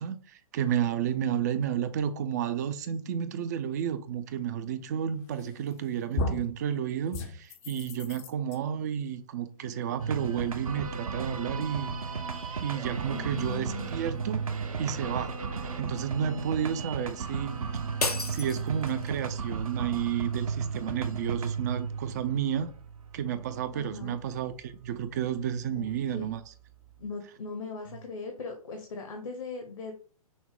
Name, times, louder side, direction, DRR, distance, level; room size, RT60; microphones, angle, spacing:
voice 1, 0.0-11.9 12.6-14.5 14.8-15.4 15.8-17.6 18.3-22.7 23.1-26.4, right 9 dB, 30° right, 0.4 m, -31 dB
sound 1, 5.4-5.8 6.2-6.6 7.1-8.6, left 2 dB, 25° left, 0.5 m, -34 dB
sound 2, 10.0-27.1, right 5 dB, 65° right, 0.8 m, -35 dB
voice 2, 13.0-13.9 23.7-24.2 25.7-26.3 27.0-29.9, left 4 dB, 60° left, 0.9 m, -39 dB
sound 3, 18.0-19.3, left 3 dB, 85° left, 0.8 m, -33 dB
6.1 x 2.1 x 3.5 m
figure-of-eight pair, 125°, 19 cm